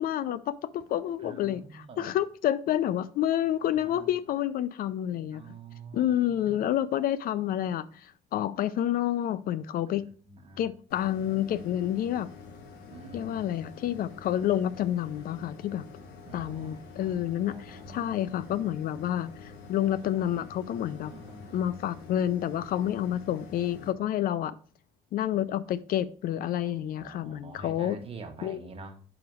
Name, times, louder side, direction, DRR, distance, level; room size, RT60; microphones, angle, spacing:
voice 1, 0.0-5.6 5.9-10.0 10.6-12.3 13.1-15.8 16.3-21.1 21.5-24.6 25.1-28.0 28.4-28.6, left 11 dB, 60° left, 0.4 m, -29 dB
voice 2, 1.2-2.2 3.7-4.1 5.3-6.7 9.9-10.7 12.9-13.5 16.3-18.6 21.0-21.8 26.6-29.0, right 3 dB, 35° right, 1.3 m, -47 dB
sound 1, 10.9-23.9, left 4 dB, 75° left, 1.3 m, -47 dB
5.1 x 4.9 x 4.7 m
cardioid pair, 110°, 17 cm